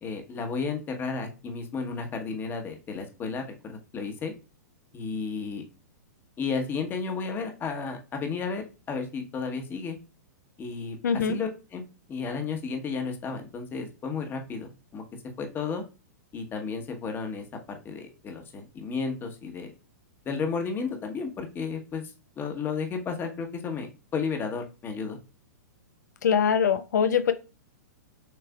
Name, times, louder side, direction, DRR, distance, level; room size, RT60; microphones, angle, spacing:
voice 1, 0.0-4.3 4.9-5.6 6.4-10.0 10.6-11.8 12.1-15.0 15.4-15.8 16.3-19.7 20.2-25.2, left 5 dB, 20° left, 5 dB, 1.1 m, -33 dB
voice 2, 11.0-11.4 26.2-27.3, left 7 dB, 80° left, 11 dB, 0.4 m, -23 dB
6.5 x 3.3 x 2.3 m, 0.32 s
hypercardioid pair, 130°, 9 cm